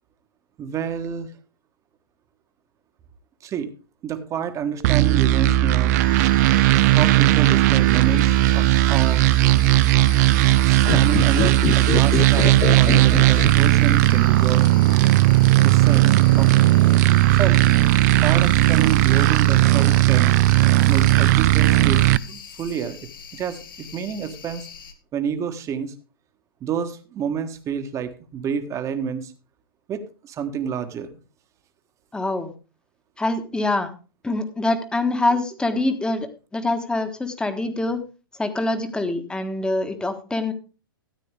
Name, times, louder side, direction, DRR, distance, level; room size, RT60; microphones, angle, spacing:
voice 1, 0.6-1.3 3.4-3.7 4.0-5.9 6.9-9.3 10.6-14.7 15.5-16.5 17.3-17.6 18.2-20.3 20.9-23.0 23.3-24.7 25.1-25.9 26.6-29.3 29.9-31.1, right 7 dB, 25° right, 8 dB, 1.4 m, -29 dB
sound 1, 4.8-22.2, right 16 dB, 45° right, 0.4 m, -16 dB
sound 2, 6.0-24.9, left 6 dB, 70° left, 1.9 m, -42 dB
sound 3, 10.8-14.2 14.4-14.5, left 11 dB, 25° left, 0.5 m, -26 dB
voice 2, 32.1-32.5 33.2-33.9 34.2-38.0 38.4-40.5, left 2 dB, 5° left, 8 dB, 1.4 m, -25 dB
13.5 x 9.1 x 3.5 m, 0.34 s
hypercardioid pair, 110°, 12 cm